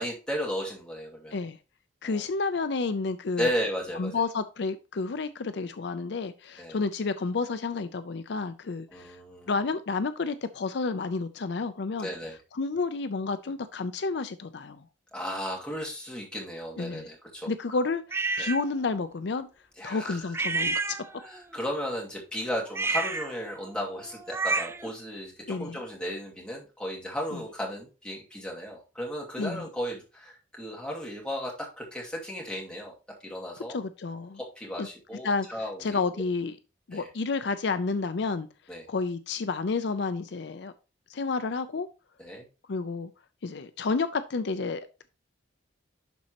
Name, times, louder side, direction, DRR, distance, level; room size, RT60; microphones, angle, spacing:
voice 1, 0.0-1.4 2.0-2.2 3.4-4.1 6.6-6.8 8.9-9.5 12.0-12.4 15.1-17.5 18.4-18.5 19.8-20.2 21.2-32.9 33.2-33.8 34.4-36.2 36.9-37.1 38.7-38.8 42.2-42.5, equal, 5° left, -3 dB, 2.4 m, -35 dB
voice 2, 2.0-3.5 3.9-9.2 9.5-12.1 12.5-14.8 16.8-17.1 17.5-19.5 19.8-21.0 25.5-25.8 29.4-29.7 33.7-34.4 34.8-34.9 35.2-35.5 35.8-36.6 36.9-38.5 38.9-40.7 41.1-41.9 42.7-43.1 43.4-45.1, left 4 dB, 65° left, 11 dB, 0.5 m, -30 dB
sound 1, 18.1-18.6 20.3-21.4 22.7-24.9, right 3 dB, 15° right, 0.3 m, -30 dB
11.5 x 4.2 x 2.9 m, 0.31 s
head